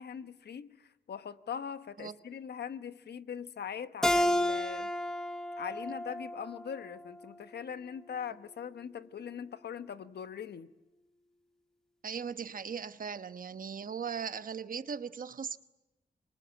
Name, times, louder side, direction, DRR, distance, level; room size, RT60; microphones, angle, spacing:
voice 1, 0.0-4.9 5.6-10.7, left 7 dB, 75° left, 1.2 m, -41 dB
Keyboard (musical), 4.0-7.3, left 1 dB, 5° left, 1.0 m, -31 dB
voice 2, 12.0-15.6, right 6 dB, 55° right, 1.1 m, -38 dB
27.0 x 24.0 x 8.7 m
wide cardioid pair, 115°, 17 cm